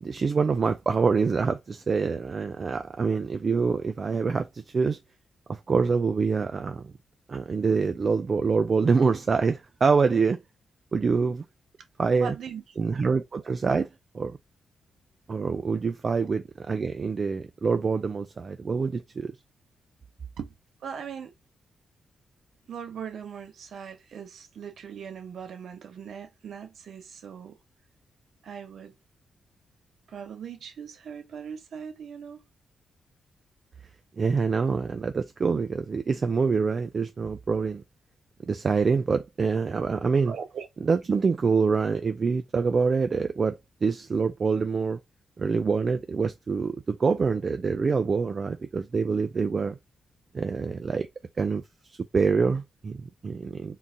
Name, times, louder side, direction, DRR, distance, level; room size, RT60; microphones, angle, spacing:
voice 1, 0.0-5.0 5.5-6.9 7.3-10.4 10.9-11.4 12.0-12.3 12.8-13.9 14.1-14.4 15.3-19.3 34.2-37.8 38.4-40.3 40.8-45.0 45.4-49.8 50.3-51.1 51.4-51.6 51.9-53.8, right 5 dB, 45° right, 0.3 m, -25 dB
voice 2, 12.2-12.6 20.4-20.5 20.8-21.3 22.7-27.6 28.4-28.9 30.1-32.4 40.3-40.7, right 7 dB, 70° right, 0.7 m, -39 dB
3.7 x 2.5 x 2.7 m
cardioid pair, 90°, 0 cm